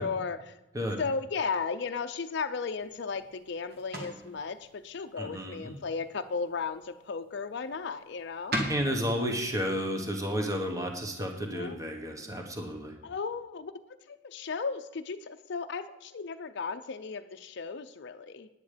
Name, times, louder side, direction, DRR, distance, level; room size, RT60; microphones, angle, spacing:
voice 1, 0.0-0.6 1.0-8.5 11.5-11.8 13.0-13.7 14.1-18.5, left 5 dB, 60° left, 7 dB, 0.5 m, -35 dB
sound 1, 2.7-11.9, right 1 dB, 50° right, 1.9 m, -42 dB
voice 2, 5.2-5.8 8.7-12.9, equal, 15° right, 3 dB, 1.3 m, -32 dB
9.7 x 9.5 x 5.1 m, 0.95 s
head